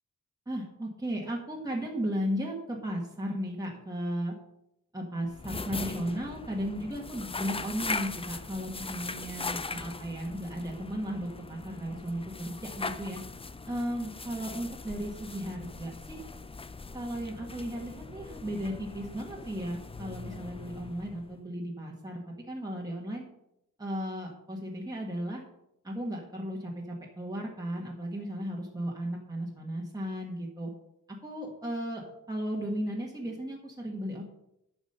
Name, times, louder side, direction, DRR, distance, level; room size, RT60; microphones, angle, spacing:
voice 1, 0.5-4.3 4.9-13.2 13.7-16.2 16.9-23.2 23.8-25.4 25.8-30.7 31.2-34.2, equal, 10° right, -2 dB, 1.6 m, -35 dB
sound 1, 5.3-21.4, left 4 dB, 15° left, 0.3 m, -40 dB
10.5 x 6.1 x 5.6 m, 0.82 s
wide cardioid pair, 125°, 34 cm